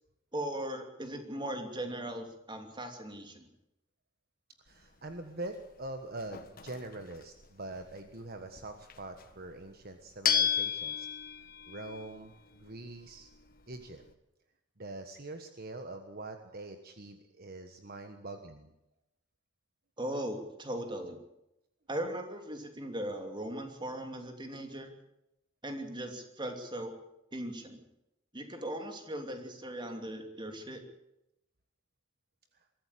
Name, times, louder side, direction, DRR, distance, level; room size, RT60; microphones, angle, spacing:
voice 1, 0.3-3.4 20.0-21.2 21.9-24.9 25.6-26.9 27.3-27.8 28.3-30.8, right 1 dB, 25° right, 5 dB, 2.8 m, -38 dB
voice 2, 4.6-11.1 11.7-13.3 13.7-14.0 14.8-18.7 32.5-32.6, right 2 dB, 50° right, 7 dB, 1.4 m, -44 dB
sound 1, 4.7-14.1, left 8 dB, 45° left, 1.6 m, -37 dB
22.5 x 14.0 x 8.5 m, 0.88 s
head